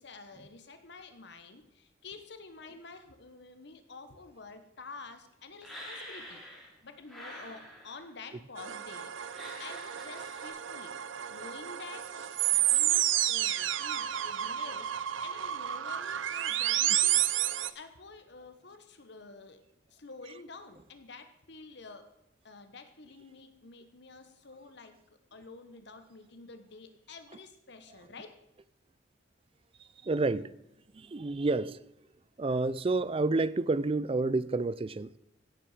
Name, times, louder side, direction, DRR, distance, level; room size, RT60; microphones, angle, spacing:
voice 1, 0.0-6.4 6.8-10.9 11.3-14.9 15.2-19.6 19.9-22.1 22.4-28.3, left 4 dB, 60° left, 1.2 m, -49 dB
sound 1, 5.6-6.8 7.1-8.1 9.3-10.5, equal, ahead, 3.2 m, -47 dB
sound 2, 8.6-17.7, right 12 dB, 80° right, 0.6 m, -30 dB
voice 2, 30.0-30.5 30.9-31.8 32.4-35.2, right 3 dB, 30° right, 0.4 m, -29 dB
16.5 x 7.5 x 5.0 m
head